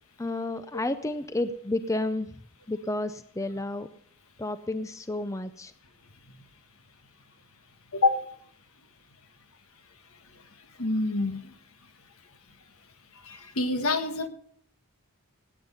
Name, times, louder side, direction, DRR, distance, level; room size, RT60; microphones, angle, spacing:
voice 1, 0.2-2.3 2.7-3.9 4.4-5.7, left 2 dB, 15° left, 12 dB, 0.5 m, -31 dB
voice 2, 7.9-8.2 10.8-11.4 13.2-14.3, left 2 dB, 70° left, 8 dB, 1.5 m, -26 dB
17.5 x 8.9 x 5.5 m, 0.63 s
head